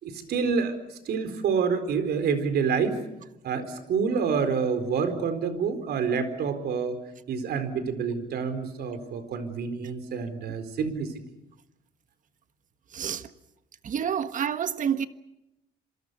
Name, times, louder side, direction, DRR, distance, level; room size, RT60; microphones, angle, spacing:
voice 1, 0.0-3.0 3.4-7.0 7.3-11.1, right 6 dB, 70° right, 4.2 m, -28 dB
voice 2, 12.9-13.3 13.8-15.1, right 8 dB, 50° right, 1.4 m, -28 dB
27.0 x 24.5 x 6.8 m
cardioid pair, 130°, 17 cm